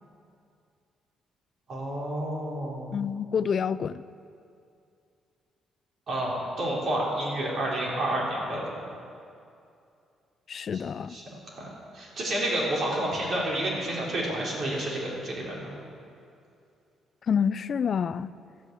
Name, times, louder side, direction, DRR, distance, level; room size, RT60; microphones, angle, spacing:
voice 1, 1.7-3.0 6.1-8.6 10.7-10.8 11.1-11.7 11.9-15.6, right 1 dB, 55° right, -4 dB, 4.2 m, -30 dB
voice 2, 2.9-4.0 10.5-11.2 17.3-18.3, left 7 dB, 50° left, 16 dB, 0.4 m, -27 dB
13.0 x 8.8 x 7.7 m, 2.5 s
cardioid pair, 90°, 0 cm